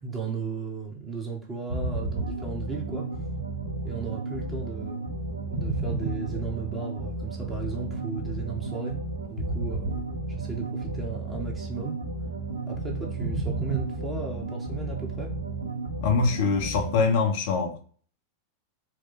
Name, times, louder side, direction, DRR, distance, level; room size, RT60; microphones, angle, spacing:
voice 1, 0.0-3.1 3.8-5.1 5.5-9.0 9.3-10.0 10.4-12.0 12.7-15.3, right 4 dB, 20° right, 1.2 m, -35 dB
sound 1, 1.7-17.1, right 2 dB, 80° left, 1.7 m, -32 dB
voice 2, 16.0-17.8, left 4 dB, 50° left, 1.0 m, -24 dB
4.7 x 2.2 x 3.9 m
figure-of-eight pair, 90°, 0 cm